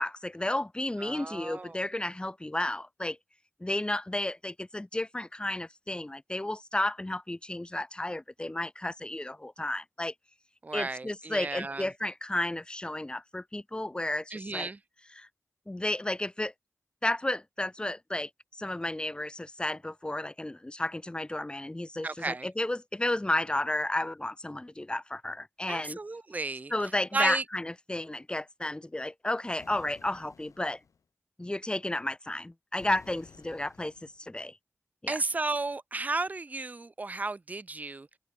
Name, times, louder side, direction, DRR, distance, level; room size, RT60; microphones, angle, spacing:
voice 1, 0.0-3.2 3.6-10.1 10.7-14.7 15.1-15.3 15.7-16.5 17.0-18.3 18.6-26.0 26.7-30.8 31.4-34.6 35.0-35.2, left 1 dB, 15° left, 1.1 m, -32 dB
voice 2, 1.0-1.8 10.6-11.9 14.3-14.8 22.0-22.5 25.7-26.7 27.1-27.4 35.1-38.1, right 3 dB, 30° right, 0.4 m, -33 dB
sound 1, 29.6-31.0 32.8-34.2, left 5 dB, 90° left, 1.6 m, -54 dB
open air
wide cardioid pair, 70°, 5 cm